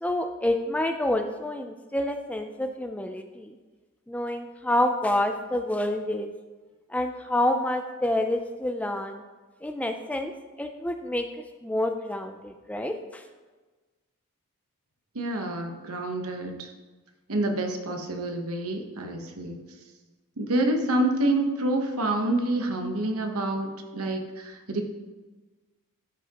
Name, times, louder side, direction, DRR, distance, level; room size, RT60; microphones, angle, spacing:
voice 1, 0.0-3.6 4.1-6.3 6.9-9.2 9.6-10.3 10.6-11.3 11.6-13.2, left 1 dB, 5° left, 6 dB, 0.4 m, -28 dB
voice 2, 15.1-16.7 17.3-19.6 20.4-24.9, right 1 dB, 80° right, 4 dB, 1.1 m, -27 dB
13.0 x 5.9 x 2.9 m, 1.3 s
head